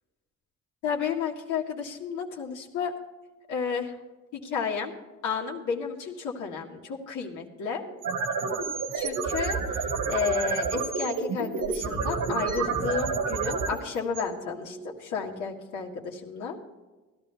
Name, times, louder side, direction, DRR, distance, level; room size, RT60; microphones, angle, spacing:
voice 1, 0.8-2.9 3.5-3.9 4.3-4.9 5.2-7.8 8.9-16.6, left 6 dB, 85° left, -2 dB, 1.9 m, -32 dB
sound 1, 7.9-15.0, right 4 dB, 80° right, 1.9 m, -29 dB
16.5 x 12.0 x 3.4 m, 1.2 s
cardioid pair, 90°, 30 cm